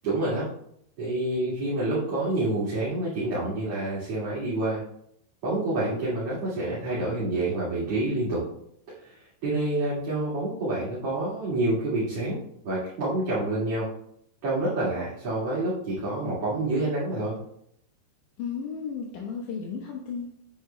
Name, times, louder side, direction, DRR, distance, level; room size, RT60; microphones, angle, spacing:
voice 1, 0.0-0.4 1.0-4.8 5.4-8.4 9.0-9.2 9.4-12.4 12.6-13.9 14.4-17.3, right 2 dB, 40° right, -10 dB, 2.6 m, -27 dB
voice 2, 18.4-20.3, left 6 dB, 70° left, -2 dB, 1.9 m, -34 dB
9.3 x 8.3 x 2.2 m, 0.71 s
omnidirectional pair, 4.8 m